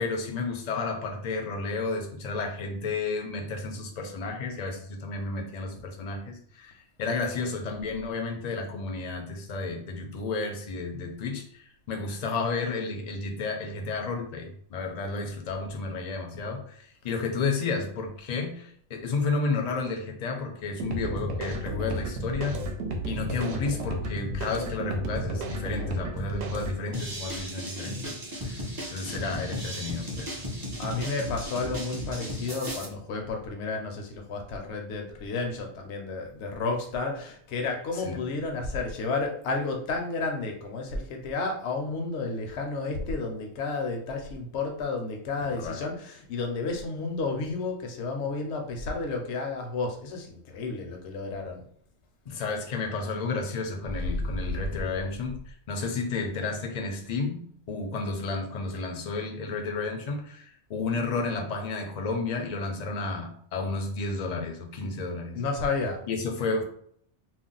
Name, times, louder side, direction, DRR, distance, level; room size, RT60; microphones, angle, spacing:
voice 1, 0.0-22.6 23.0-28.6 28.9-30.5 37.9-38.3 45.4-45.8 52.3-65.4 66.1-66.6, left 4 dB, 50° left, 3 dB, 0.5 m, -32 dB
sound 1, 20.8-26.8, right 1 dB, 70° right, 0.8 m, -32 dB
sound 2, 26.9-32.8, equal, 30° right, 0.4 m, -35 dB
voice 2, 30.8-51.6 54.4-54.6 64.8-64.9 65.3-66.0, left 3 dB, 75° left, 2 dB, 0.9 m, -32 dB
2.5 x 2.0 x 3.8 m, 0.63 s
omnidirectional pair, 1.2 m